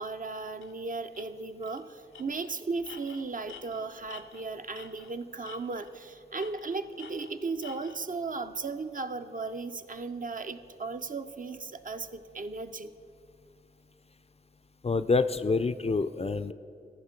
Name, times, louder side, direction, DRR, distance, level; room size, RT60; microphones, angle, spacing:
voice 1, 0.0-12.9, right 3 dB, 45° right, 9 dB, 0.5 m, -36 dB
Tools, 0.6-0.7 1.1-1.3 1.6-1.8 2.1-5.2 5.4-6.0 6.4-8.0, left 6 dB, 85° left, 0.6 m, -49 dB
voice 2, 14.8-16.5, left 4 dB, 35° left, 12 dB, 0.4 m, -27 dB
14.0 x 5.1 x 4.4 m, 2.5 s
cardioid pair, 40°, 19 cm